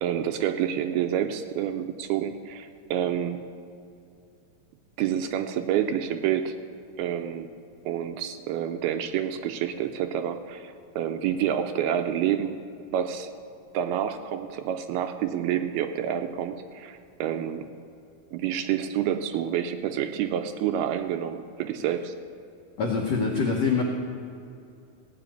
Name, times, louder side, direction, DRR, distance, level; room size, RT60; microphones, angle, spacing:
voice 1, 0.0-3.4 5.0-6.6 7.0-7.5 7.9-12.6 12.9-13.3 13.7-17.7 18.3-22.1, right 10 dB, 85° right, 7 dB, 2.4 m, -28 dB
voice 2, 22.8-23.8, left 5 dB, 75° left, -1 dB, 1.5 m, -24 dB
16.0 x 5.8 x 9.1 m, 2.5 s
omnidirectional pair, 4.7 m